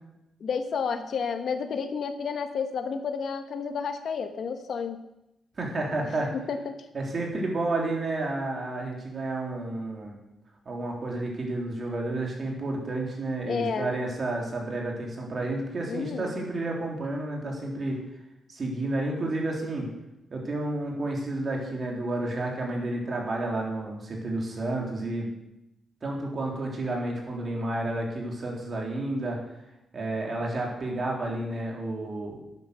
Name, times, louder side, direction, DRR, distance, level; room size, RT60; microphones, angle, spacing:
voice 1, 0.4-5.0 6.0-6.1 6.5-6.8 7.1-7.2 13.4-13.9 15.9-16.3, left 6 dB, 55° left, 8 dB, 1.1 m, -31 dB
voice 2, 5.6-6.3 6.9-10.2 10.6-18.0 18.5-19.9 20.3-25.3 26.0-29.4 29.9-32.4, right 2 dB, 35° right, -1 dB, 3.2 m, -31 dB
11.5 x 9.3 x 6.8 m, 0.90 s
wide cardioid pair, 145°, 0 cm